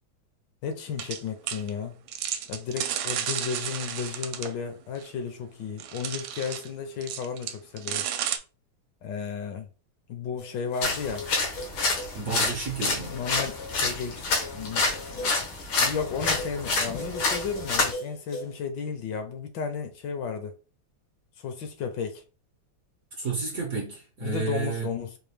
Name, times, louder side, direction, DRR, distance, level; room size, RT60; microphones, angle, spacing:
voice 1, 0.6-2.0 2.5-8.1 9.0-9.7 10.1-11.3 13.1-14.2 14.5-15.4 15.8-20.6 21.4-22.2 24.2-25.2, left 6 dB, 70° left, 1.3 m, -33 dB
sound 1, 1.0-1.2 1.5-1.7 2.1-4.6 5.0-5.1 5.8-6.7 7.0-8.4, right 10 dB, 80° right, 1.3 m, -32 dB
sound 2, 10.4-18.6, left 1 dB, 55° left, 0.7 m, -41 dB
sound 3, 10.8-17.9, left 3 dB, 90° left, 2.0 m, -28 dB
voice 2, 12.1-13.1 23.2-24.9, right 4 dB, 60° right, 1.0 m, -31 dB
4.7 x 2.3 x 3.4 m
omnidirectional pair, 2.2 m